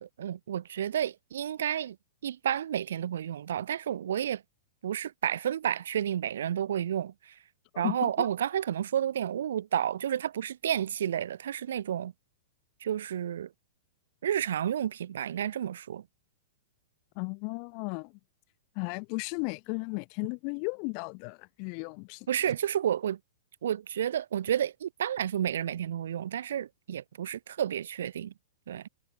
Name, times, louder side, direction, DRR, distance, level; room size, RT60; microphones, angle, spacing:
voice 1, 0.0-2.0 2.2-4.4 4.8-7.3 7.8-12.1 12.8-13.5 14.2-16.0 22.3-23.2 23.6-28.3 28.7-28.8, right 10 dB, 60° right, 0.3 m, -31 dB
voice 2, 7.7-8.3 17.2-18.1 18.7-22.3, left 40 dB or more, 40° left, 0.7 m, -35 dB
figure-of-eight pair, 100°, 0 cm